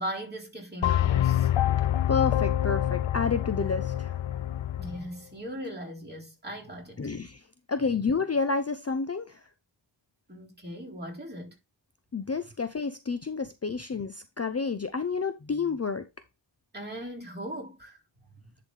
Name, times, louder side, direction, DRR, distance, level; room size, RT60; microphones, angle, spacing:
voice 1, 0.0-1.5 4.8-7.1 10.3-11.5 16.7-18.0, equal, 20° right, 3.8 m, -38 dB
sound 1, 0.8-5.0, left 12 dB, 90° left, 0.5 m, -26 dB
voice 2, 2.1-4.2 7.0-7.4 7.7-9.4 12.1-16.1, left 5 dB, 35° left, 0.6 m, -29 dB
10.5 x 4.0 x 3.3 m
wide cardioid pair, 60°, 45 cm